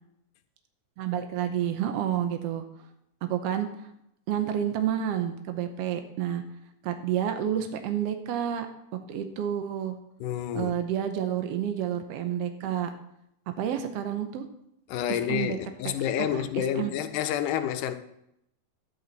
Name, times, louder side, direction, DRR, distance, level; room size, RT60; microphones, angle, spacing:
voice 1, 1.0-2.6 3.2-3.9 4.3-6.4 6.8-8.7 9.1-10.0 10.5-12.9 13.6-14.5 15.1-15.6 15.8-15.9 16.2-16.9, right 10 dB, 75° right, 1.4 m, -29 dB
voice 2, 10.2-10.8 14.9-18.0, left 10 dB, 80° left, 2.3 m, -29 dB
13.0 x 10.0 x 4.0 m
omnidirectional pair, 3.7 m